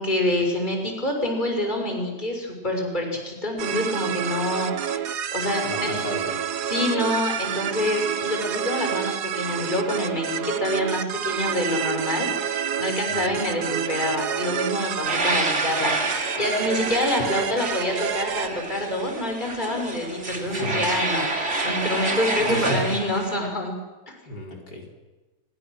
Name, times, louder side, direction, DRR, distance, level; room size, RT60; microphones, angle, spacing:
voice 1, 0.0-5.9 6.7-23.7 24.1-24.2, left 1 dB, 25° left, 2 dB, 6.0 m, -27 dB
sound 1, 3.6-18.5, right 9 dB, 75° right, 1.6 m, -28 dB
voice 2, 5.7-6.4 13.1-13.3 20.4-20.8 22.4-22.9 24.3-25.0, equal, 75° left, 0 dB, 5.1 m, -33 dB
sound 2, 15.0-23.3, right 2 dB, 40° right, 3.3 m, -28 dB
28.5 x 24.5 x 6.4 m, 1.2 s
omnidirectional pair, 1.8 m